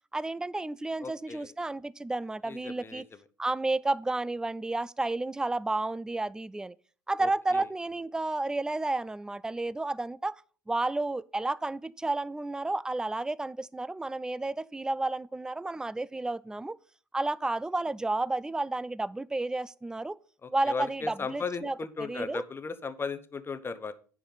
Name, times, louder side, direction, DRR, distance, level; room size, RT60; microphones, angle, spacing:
voice 1, 0.1-3.1 3.4-6.8 7.1-10.4 10.7-16.8 17.1-20.2 20.5-22.4, right 2 dB, 5° right, 0.3 m, -31 dB
voice 2, 1.0-1.5 2.5-3.0 7.2-7.7 20.4-23.9, left 4 dB, 20° left, 0.8 m, -37 dB
10.0 x 4.6 x 5.3 m
figure-of-eight pair, 65°, 10 cm